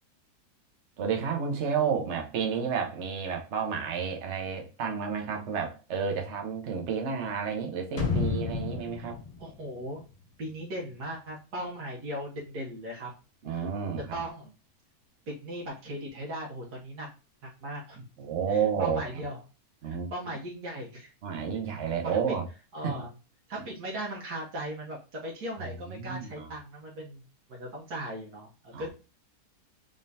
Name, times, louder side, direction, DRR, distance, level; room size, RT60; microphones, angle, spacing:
voice 1, 1.0-9.2 13.4-14.1 18.2-19.2 19.8-20.1 21.2-22.4 22.8-23.0 25.9-26.5 28.7-28.9, right 6 dB, 50° right, 1.0 m, -31 dB
sound 1, 8.0-10.8 11.1-11.2, left 5 dB, 30° left, 0.8 m, -32 dB
voice 2, 9.4-10.0 10.4-13.1 13.5-13.7 14.1-14.5 15.3-17.1 17.4-18.1 18.5-19.4 19.8-21.1 22.0-22.4 22.7-23.1 23.5-27.2 27.5-28.9, right 1 dB, 80° right, 1.7 m, -38 dB
3.8 x 3.7 x 2.7 m
omnidirectional pair, 1.6 m